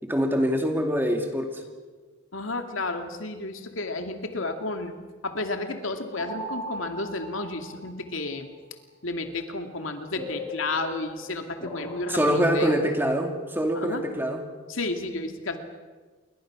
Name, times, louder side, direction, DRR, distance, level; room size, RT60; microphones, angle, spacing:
voice 1, 0.0-1.6 12.1-14.4, equal, 10° right, 3 dB, 2.5 m, -24 dB
voice 2, 2.3-5.0 5.2-8.5 9.0-12.8 13.7-14.0 14.7-15.6, left 2 dB, 85° left, 5 dB, 2.5 m, -32 dB
sound 1, 6.2-8.0 10.1-12.9, left 1 dB, 15° left, 6.8 m, -39 dB
29.0 x 22.5 x 6.3 m, 1.4 s
head